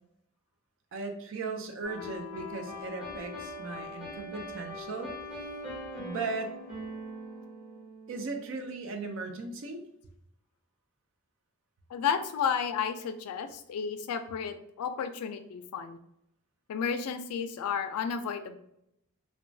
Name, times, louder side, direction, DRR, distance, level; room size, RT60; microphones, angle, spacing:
voice 1, 0.9-5.1 6.0-6.6 8.1-9.8, right 3 dB, 60° right, 4 dB, 0.4 m, -37 dB
sound 1, 1.8-8.6, left 1 dB, 5° right, 1.0 m, -42 dB
voice 2, 11.9-16.0 16.7-18.6, left 7 dB, 85° left, 9 dB, 0.3 m, -32 dB
3.0 x 2.1 x 2.6 m, 0.78 s
head